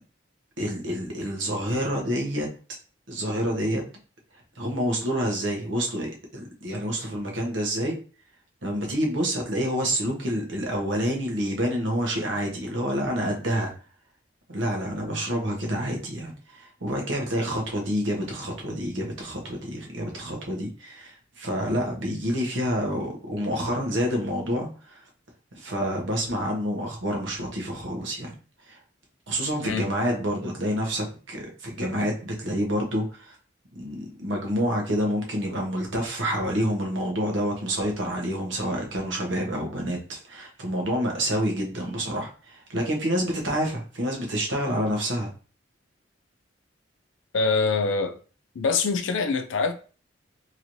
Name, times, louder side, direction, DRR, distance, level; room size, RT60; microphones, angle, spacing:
voice 1, 0.6-2.5 3.1-3.8 4.6-8.0 8.6-13.7 14.5-25.0 25.5-28.3 28.7-28.8 29.3-33.4 33.7-45.3, equal, 80° right, 1.1 m, -28 dB
voice 2, 47.3-48.2 48.6-49.7, left 4 dB, 85° left, 0.5 m, -24 dB
3.0 x 3.0 x 2.6 m
head